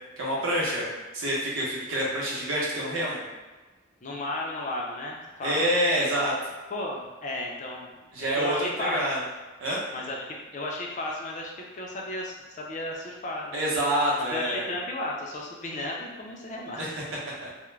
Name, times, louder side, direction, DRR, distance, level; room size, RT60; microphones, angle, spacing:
voice 1, 0.2-0.9 1.1-3.2 5.4-6.3 8.1-9.2 9.6-9.8 13.5-14.6 16.8-16.9, equal, 85° right, -5 dB, 0.8 m, -27 dB
voice 2, 4.0-5.6 6.7-7.9 8.3-9.0 9.9-13.6 14.2-16.9, left 1 dB, 40° left, -1 dB, 0.4 m, -34 dB
2.3 x 2.1 x 3.1 m, 1.2 s
head